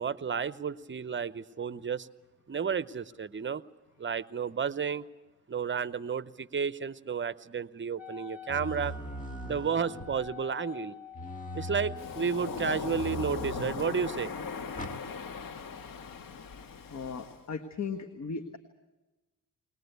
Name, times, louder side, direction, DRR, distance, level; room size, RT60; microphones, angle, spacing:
voice 1, 0.0-2.1 2.5-3.6 4.0-5.1 5.5-8.9 9.4-10.9 11.5-14.3, right 6 dB, 35° right, 16 dB, 0.8 m, -32 dB
Wind instrument woodwind instrument, 8.0-13.0, left 9 dB, 5° right, 2.5 m, -46 dB
sound 1, 8.5-10.4 11.1-12.1 12.9-14.0 14.7-15.0, equal, 25° left, 2.1 m, -40 dB
Waves surf, 12.0-17.4, left 5 dB, 75° left, 1.6 m, -39 dB
voice 2, 16.9-18.6, left 5 dB, 55° left, 8 dB, 1.6 m, -37 dB
21.5 x 20.0 x 8.1 m, 1.1 s
cardioid pair, 75°, 33 cm